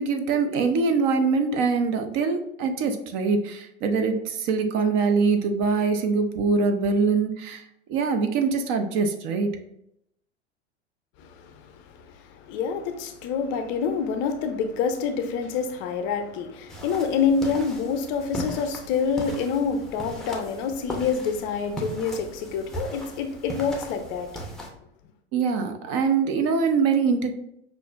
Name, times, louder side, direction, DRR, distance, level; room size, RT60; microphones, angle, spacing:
voice 1, 0.0-7.6 7.9-9.5 25.3-27.3, right 5 dB, 35° right, 0.5 m, -23 dB
voice 2, 12.3-24.3, left 6 dB, 35° left, 0.5 m, -27 dB
sound 1, 16.7-24.7, right 1 dB, ahead, 0.7 m, -38 dB
5.8 x 2.5 x 2.4 m
figure-of-eight pair, 90°, 33 cm